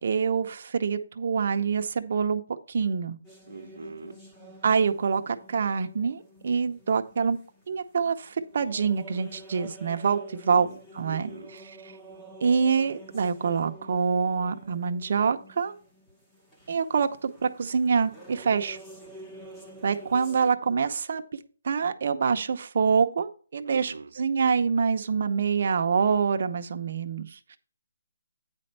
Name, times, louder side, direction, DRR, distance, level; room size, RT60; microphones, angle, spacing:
voice 1, 0.0-2.4 2.7-3.2 4.6-7.4 7.7-10.7 10.9-11.3 11.6-11.8 12.4-15.7 16.7-18.8 19.8-21.2 21.6-27.6, right 6 dB, 40° right, 6 dB, 0.7 m, -26 dB
sound 1, 3.2-20.5, right 1 dB, 5° left, 0.8 m, -49 dB
voice 2, 3.5-4.2 10.5-10.8 11.0-11.6 23.6-24.1, right 3 dB, 80° right, 0 dB, 0.8 m, -41 dB
9.1 x 4.3 x 5.4 m, 0.40 s
hypercardioid pair, 175°, 0 cm